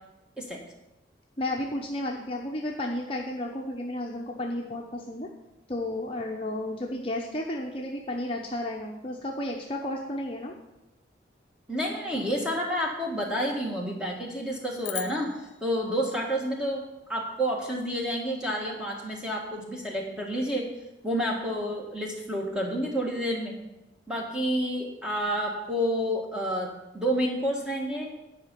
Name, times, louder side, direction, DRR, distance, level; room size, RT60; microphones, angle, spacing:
voice 1, 1.4-5.3 5.7-10.5, left 1 dB, 30° left, -1 dB, 0.8 m, -32 dB
voice 2, 11.7-15.3 15.6-16.8 17.1-20.7 21.0-23.6 24.1-28.1, equal, 5° right, -2 dB, 1.7 m, -29 dB
sound 1, 14.8-17.3, left 14 dB, 70° left, 0.7 m, -42 dB
10.0 x 5.0 x 8.2 m, 0.97 s
head